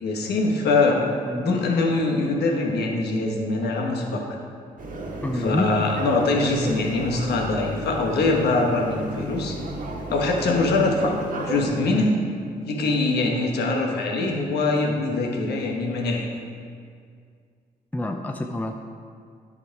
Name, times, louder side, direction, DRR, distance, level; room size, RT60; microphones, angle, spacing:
voice 1, 0.0-1.0 1.4-4.2 5.4-9.6 10.1-11.1 11.4-12.1 12.7-16.3, left 3 dB, 80° left, 1 dB, 1.3 m, -23 dB
voice 2, 1.3-1.6 5.2-5.7 17.9-18.7, left 1 dB, 10° left, 4 dB, 0.6 m, -27 dB
sound 1, 4.8-11.7, right 1 dB, 55° right, 1.4 m, -33 dB
9.9 x 5.5 x 4.6 m, 2.2 s
cardioid pair, 65°, 17 cm